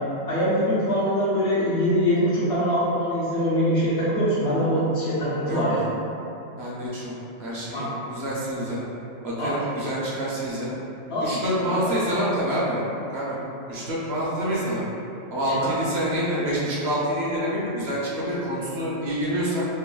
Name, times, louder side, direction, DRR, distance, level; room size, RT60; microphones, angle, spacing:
voice 1, 0.3-5.8 7.7-7.8 9.4-9.5 11.1-11.4 11.8-12.2 15.5-15.7, equal, 65° left, -11 dB, 0.9 m, -23 dB
voice 2, 6.6-7.1 7.4-8.8 9.2-10.7 11.2-12.8 13.1-13.3 13.7-14.8 15.3-19.7, equal, 65° right, -7 dB, 0.8 m, -27 dB
3.1 x 2.2 x 2.3 m, 2.8 s
omnidirectional pair, 1.2 m